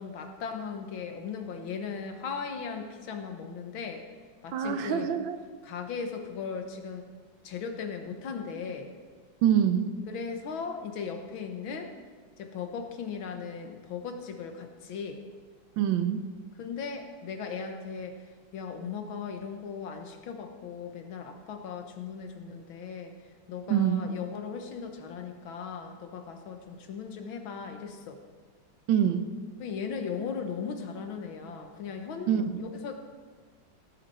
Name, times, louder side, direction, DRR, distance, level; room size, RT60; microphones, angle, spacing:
voice 1, 0.0-4.0 4.4-5.1 5.6-7.1 7.4-8.9 10.1-11.9 12.4-15.2 16.6-18.2 18.5-23.1 23.5-28.2 29.6-33.0, left 6 dB, 85° left, 5 dB, 1.9 m, -37 dB
voice 2, 4.5-5.4 9.4-9.9 15.8-16.2 23.7-24.1 28.9-29.3 32.3-32.6, right 9 dB, 80° right, 10 dB, 1.5 m, -25 dB
17.5 x 8.4 x 4.3 m, 1.5 s
omnidirectional pair, 2.1 m